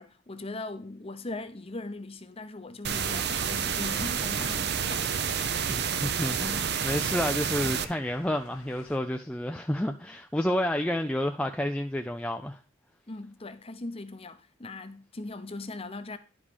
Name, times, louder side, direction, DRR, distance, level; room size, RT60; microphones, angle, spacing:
voice 1, 0.0-5.8 13.1-16.2, left 2 dB, 25° left, 0.8 m, -40 dB
sound 1, 2.8-7.8, right 7 dB, 50° right, 0.7 m, -29 dB
sound 2, 3.3-9.0, left 4 dB, 90° left, 1.2 m, -52 dB
voice 2, 5.7-12.6, left 1 dB, 5° left, 0.4 m, -30 dB
11.0 x 5.3 x 5.0 m
head